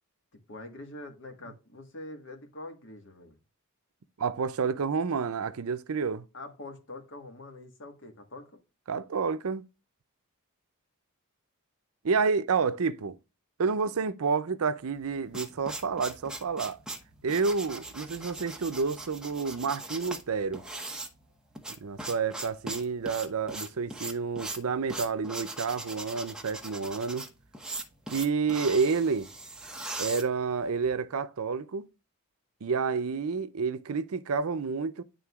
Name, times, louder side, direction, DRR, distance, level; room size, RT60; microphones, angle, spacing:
voice 1, 0.3-3.4 6.3-8.6, left 2 dB, 55° left, 1.5 m, -44 dB
voice 2, 4.2-6.3 8.9-9.6 12.0-13.2 13.6-16.8 17.2-20.6 21.8-27.3 28.1-29.3 30.0-31.9 32.6-35.0, right 5 dB, 70° right, 0.6 m, -29 dB
sound 1, 14.9-30.9, right 2 dB, 5° right, 0.9 m, -40 dB
11.0 x 3.8 x 2.4 m
head